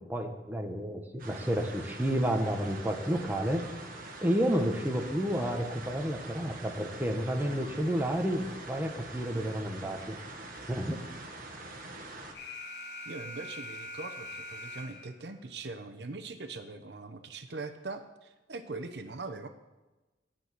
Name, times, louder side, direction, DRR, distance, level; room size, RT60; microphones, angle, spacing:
voice 1, 0.1-3.6 4.2-10.1 10.7-11.0, equal, 10° right, 3 dB, 1.0 m, -30 dB
sound 1, 1.2-12.3, right 2 dB, 50° right, 1.5 m, -44 dB
Alarm, 12.3-15.3, left 1 dB, 65° left, 1.5 m, -43 dB
voice 2, 13.1-19.5, right 3 dB, 70° right, 8 dB, 0.9 m, -41 dB
10.0 x 5.9 x 8.2 m, 1.1 s
head